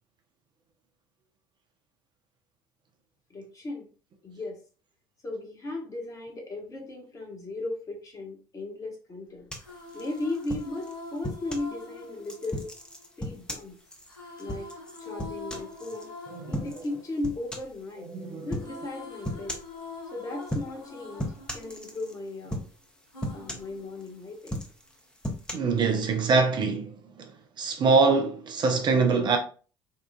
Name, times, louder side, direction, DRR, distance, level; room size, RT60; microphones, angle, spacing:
voice 1, 3.3-3.9 4.2-4.6 5.2-9.5 9.9-12.7 13.2-13.8 14.4-14.7 15.0-16.1 16.5-18.1 18.4-19.6 20.1-22.7 23.3-24.6, left 2 dB, 30° left, 1.2 m, -36 dB
sound 1, 9.4-13.5 14.1-18.1 18.4-22.6 23.1-24.6, left 3 dB, 80° left, 1.1 m, -45 dB
sound 2, 9.5-11.7 12.2-16.1 16.5-16.9 17.2-17.8 18.5-18.7 19.2-19.8 20.4-20.9 21.2-22.2 22.5-22.9 23.2-24.1 24.4-25.5, left 1 dB, 5° left, 0.8 m, -36 dB
voice 2, 16.3-16.7 18.0-18.5 25.5-27.3 27.6-29.4, right 4 dB, 40° right, 0.5 m, -24 dB
3.7 x 2.4 x 2.2 m
figure-of-eight pair, 60°, 12 cm